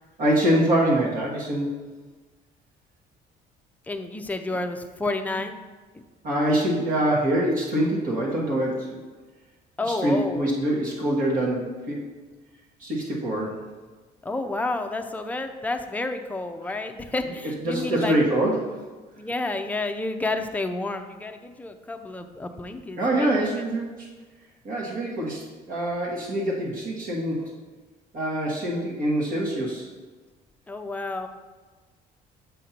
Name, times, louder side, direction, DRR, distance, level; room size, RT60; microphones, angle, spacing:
voice 1, 0.2-1.8 6.2-9.0 10.0-12.1 12.8-13.6 17.6-18.8 23.0-23.9 24.6-25.4 25.7-27.4 28.1-29.9, right 1 dB, 55° right, -4 dB, 1.5 m, -24 dB
voice 2, 3.9-5.6 9.8-10.5 14.2-18.2 19.2-23.6 30.7-31.3, left 2 dB, 10° left, 5 dB, 0.5 m, -30 dB
7.5 x 2.6 x 5.8 m, 1.3 s
cardioid pair, 110°, 17 cm